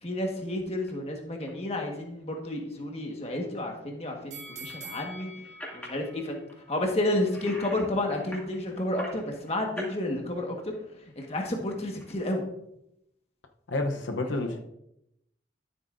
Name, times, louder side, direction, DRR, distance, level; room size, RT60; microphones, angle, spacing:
voice 1, 0.0-5.3 5.7-6.4 6.7-10.6 10.9-12.4 14.2-14.5, left 1 dB, 35° left, 1 dB, 1.5 m, -31 dB
sound 1, 0.8-0.9 1.5-1.7 2.2-2.5 4.4-6.0 6.5-9.9 10.3-12.1, equal, 10° left, 2.4 m, -44 dB
sound 2, 4.3-7.4 7.8-7.9, right 2 dB, 40° right, 1.4 m, -46 dB
voice 2, 13.7-14.6, left 2 dB, 90° left, 4 dB, 0.8 m, -29 dB
13.0 x 8.0 x 2.6 m, 0.81 s
head